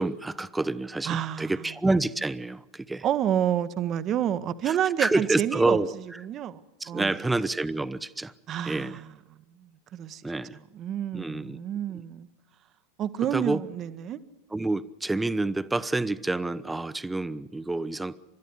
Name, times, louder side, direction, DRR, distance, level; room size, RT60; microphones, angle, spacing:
voice 1, 0.0-3.0 4.7-5.9 6.8-8.3 8.6-9.0 10.2-10.6 11.1-11.6 13.3-13.6 14.5-18.2, right 2 dB, 10° right, 0.7 m, -28 dB
voice 2, 1.0-1.5 3.0-5.8 6.2-6.6 6.9-7.2 8.5-9.1 9.9-10.2 10.5-12.3 13.0-14.2, right 10 dB, 35° right, 0.9 m, -29 dB
30.0 x 13.5 x 8.3 m
figure-of-eight pair, 90°, 0 cm